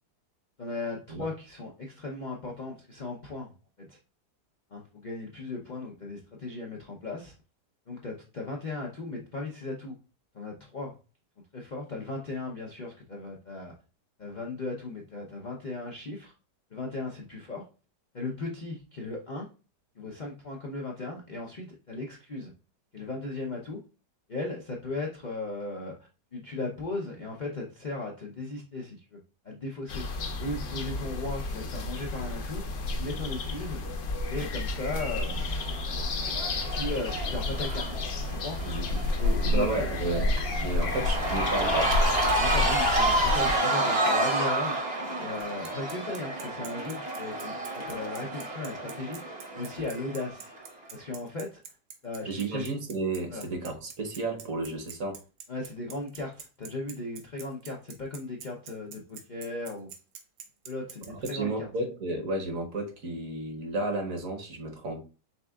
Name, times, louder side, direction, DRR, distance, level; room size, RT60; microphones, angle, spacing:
voice 1, 0.6-3.5 3.9-4.0 4.7-7.3 7.9-9.9 10.3-10.9 11.5-13.7 14.2-16.3 16.7-17.6 18.1-19.5 20.0-22.5 22.9-23.8 24.3-25.9 26.3-29.2 29.4-30.0 30.4-32.6 33.0-33.8 34.3-35.4 36.7-38.0 38.4-38.6 39.2-39.7 40.9-41.0 42.4-44.9 45.2-50.5 50.9-51.6 52.0-52.7 53.3-53.4 55.5-59.9 60.6-61.7, left 2 dB, 90° left, 0.4 m, -37 dB
sound 1, 29.9-43.6, left 2 dB, 60° left, 0.8 m, -30 dB
Cheering / Crowd, 35.3-50.6, right 1 dB, 35° right, 0.8 m, -30 dB
voice 2, 38.6-39.1 39.4-40.3 40.6-42.0 42.5-42.7 52.3-55.2 61.1-65.0, right 2 dB, 55° right, 1.2 m, -32 dB
Bicycle, 45.4-61.3, right 7 dB, 80° right, 1.4 m, -45 dB
5.5 x 3.5 x 2.3 m
omnidirectional pair, 1.9 m